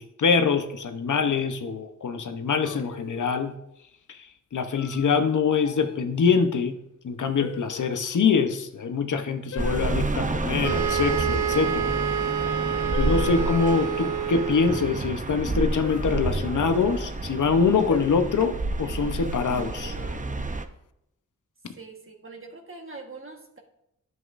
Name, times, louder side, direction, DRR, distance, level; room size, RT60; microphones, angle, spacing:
voice 1, 0.0-3.5 4.1-6.8 7.0-11.9 12.6-19.9, left 5 dB, 75° left, 8 dB, 0.9 m, -24 dB
sound 1, 2.6-3.5 4.8-5.2 5.6-6.0 7.4-8.0 9.5-10.1 12.0-12.1 12.9-13.9 15.8-16.9 17.9-18.5 19.8-20.3, left 8 dB, 55° left, 0.4 m, -39 dB
sound 2, 9.6-20.6, right 2 dB, 25° right, 0.7 m, -30 dB
sound 3, 10.6-15.0, right 8 dB, 75° right, 0.8 m, -28 dB
voice 2, 21.7-23.6, right 3 dB, 45° right, 1 dB, 1.4 m, -43 dB
11.0 x 7.5 x 2.6 m, 0.80 s
cardioid pair, 70°, 31 cm